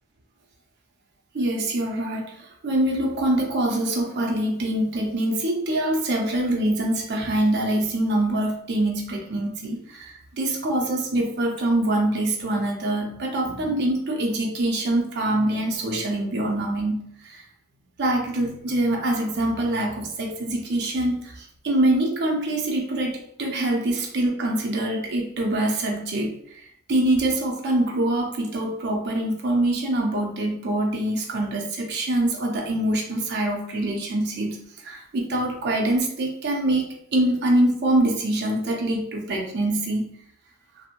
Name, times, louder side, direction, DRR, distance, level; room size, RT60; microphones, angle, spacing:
voice 1, 1.3-17.4 18.0-26.3 26.9-34.6 34.8-40.0, right 1 dB, 55° right, 0 dB, 0.5 m, -24 dB
2.9 x 2.0 x 2.4 m, 0.69 s
head